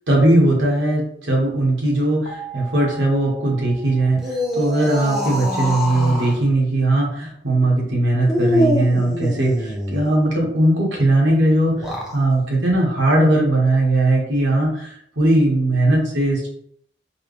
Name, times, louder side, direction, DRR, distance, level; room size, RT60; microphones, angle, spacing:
voice 1, 0.1-4.2 4.5-11.8 12.1-16.5, right 1 dB, 75° right, -3 dB, 1.4 m, -19 dB
sound 1, 2.2-5.2, right 6 dB, 50° left, 0.9 m, -40 dB
sound 2, 4.1-6.4 8.3-10.1 11.7-12.2, equal, 5° right, 0.7 m, -24 dB
4.6 x 2.3 x 3.3 m, 0.67 s
head